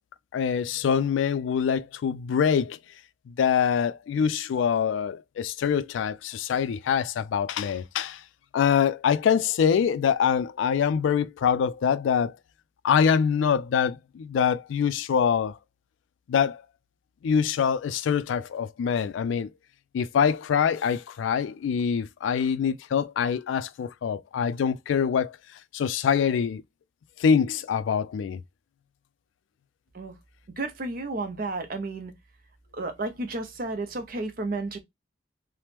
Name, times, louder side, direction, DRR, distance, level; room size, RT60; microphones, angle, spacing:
voice 1, 0.3-2.8 3.3-8.2 8.5-12.3 12.8-15.6 16.3-16.6 17.2-19.5 19.9-25.4 25.7-26.6 27.2-28.4, left 7 dB, 85° left, 0.3 m, -24 dB
voice 2, 30.6-32.1 32.7-34.8, right 2 dB, 50° right, 0.6 m, -32 dB
2.9 x 2.0 x 3.2 m
head